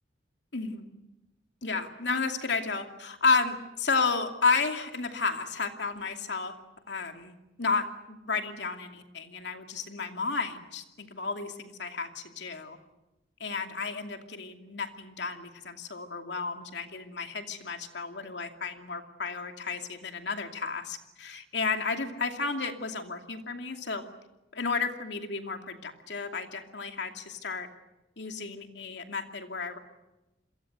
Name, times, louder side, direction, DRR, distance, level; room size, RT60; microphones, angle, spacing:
voice 1, 0.5-0.9 1.6-6.5 6.9-12.8 13.4-24.0 24.5-27.7 28.2-29.8, left 4 dB, 80° left, 5 dB, 2.7 m, -32 dB
28.5 x 22.5 x 8.1 m, 0.99 s
head